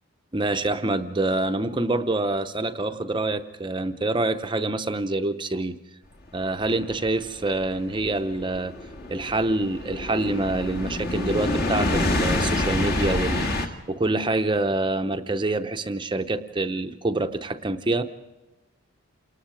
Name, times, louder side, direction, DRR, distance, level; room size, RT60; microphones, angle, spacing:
voice 1, 0.3-5.8 6.3-8.8 9.1-18.0, right 2 dB, 20° right, 8 dB, 0.7 m, -26 dB
sound 1, 6.6-13.7, left 2 dB, 45° left, 1.8 m, -27 dB
28.0 x 19.5 x 4.8 m, 1.1 s
head